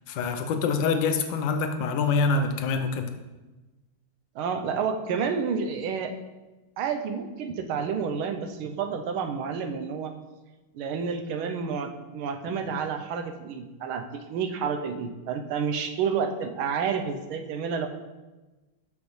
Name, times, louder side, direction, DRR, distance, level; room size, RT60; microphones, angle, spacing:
voice 1, 0.1-3.1, left 4 dB, 70° left, 7 dB, 1.4 m, -25 dB
voice 2, 4.3-6.1 6.8-10.1 10.7-17.9, right 6 dB, 85° right, 6 dB, 1.6 m, -30 dB
13.0 x 5.3 x 3.2 m, 1.1 s
omnidirectional pair, 2.3 m